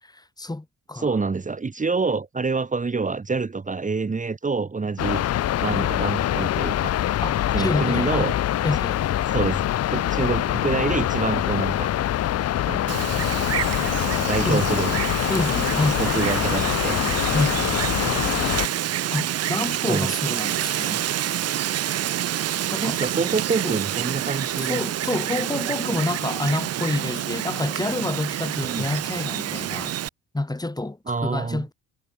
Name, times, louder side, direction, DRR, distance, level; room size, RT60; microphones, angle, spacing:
voice 1, 0.0-1.2 7.2-8.3 8.6-9.0 14.4-14.6 15.3-16.2 17.3-17.7 19.1-21.1 22.7-23.0 23.6-23.8 24.6-30.0 30.3-31.7, left 2 dB, 15° left, 4.8 m, -28 dB
voice 2, 0.9-5.2 5.6-6.9 7.5-8.3 9.3-11.9 12.6-13.0 14.1-14.9 16.0-17.0 19.8-20.1 22.8-24.8 28.6-28.8 31.1-31.6, right 4 dB, 25° right, 2.3 m, -26 dB
sound 1, 5.0-18.7, left 12 dB, 55° left, 0.7 m, -24 dB
Wind, 12.9-30.1, right 12 dB, 55° right, 0.7 m, -28 dB
cardioid pair, 90°, 30 cm